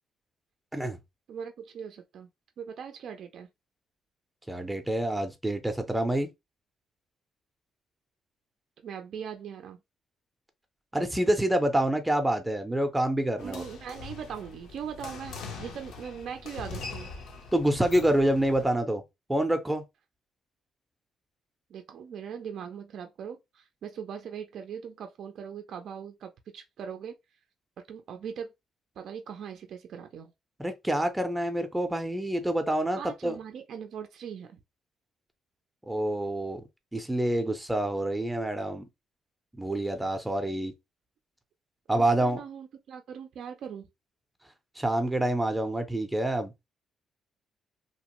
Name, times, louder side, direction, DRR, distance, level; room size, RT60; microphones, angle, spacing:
voice 1, 1.3-2.3 2.6-3.5 8.8-9.8 13.4-17.1 21.7-27.2 27.9-28.5 29.0-30.3 33.0-34.6 42.0-43.9, right 7 dB, 70° right, 0.4 m, -40 dB
voice 2, 4.5-6.3 10.9-13.6 17.5-19.0 19.3-19.8 30.6-33.4 35.9-36.6 36.9-38.9 39.6-40.7 41.9-42.4 44.8-46.5, right 1 dB, 10° right, 0.5 m, -27 dB
sound 1, 13.4-18.6, left 4 dB, 85° left, 0.7 m, -42 dB
2.8 x 2.0 x 2.9 m
cardioid pair, 90°, 0 cm